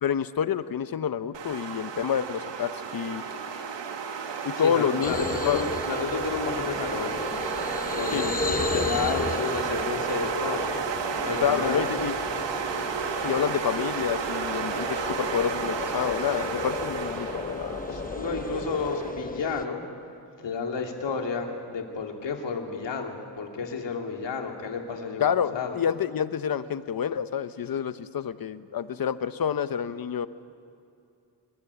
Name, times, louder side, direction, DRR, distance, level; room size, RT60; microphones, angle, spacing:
voice 1, 0.0-3.2 4.4-5.1 5.4-5.6 8.1-8.2 11.4-12.2 13.2-17.8 25.2-30.3, left 8 dB, 55° left, 13 dB, 0.9 m, -28 dB
sound 1, 1.3-19.1, right 6 dB, 85° right, 1.8 m, -32 dB
voice 2, 4.1-7.2 8.0-10.7 11.2-11.8 17.2-19.8 20.4-25.8, left 5 dB, 80° left, 2 dB, 2.7 m, -32 dB
sound 2, 5.0-19.7, left 3 dB, 20° left, 0.7 m, -34 dB
26.0 x 15.0 x 9.9 m, 2.6 s
wide cardioid pair, 125°, 42 cm